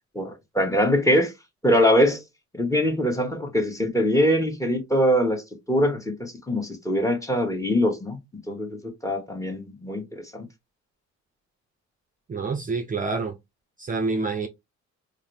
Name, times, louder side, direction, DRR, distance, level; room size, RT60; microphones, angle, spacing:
voice 1, 0.1-1.3 1.6-2.2 2.5-8.2 8.5-10.5, equal, 10° left, 1.3 m, -23 dB
voice 2, 12.3-13.4 13.8-14.5, right 4 dB, 25° right, 0.6 m, -27 dB
4.0 x 2.6 x 3.3 m
cardioid pair, 90°, 30 cm